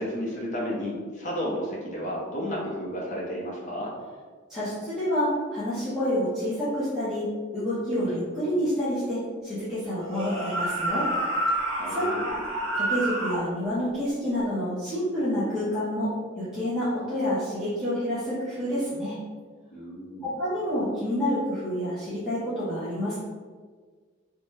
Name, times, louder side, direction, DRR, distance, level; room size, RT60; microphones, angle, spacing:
voice 1, 0.0-3.9 8.1-8.2 11.8-12.3 19.7-20.3, equal, 40° left, -4 dB, 0.7 m, -32 dB
voice 2, 4.5-7.2 7.5-11.1 11.9-12.1 12.7-19.2 20.2-23.2, equal, ahead, -13 dB, 0.7 m, -28 dB
sound 1, 10.0-13.5, right 1 dB, 70° right, 0.8 m, -28 dB
2.7 x 2.2 x 3.1 m, 1.5 s
head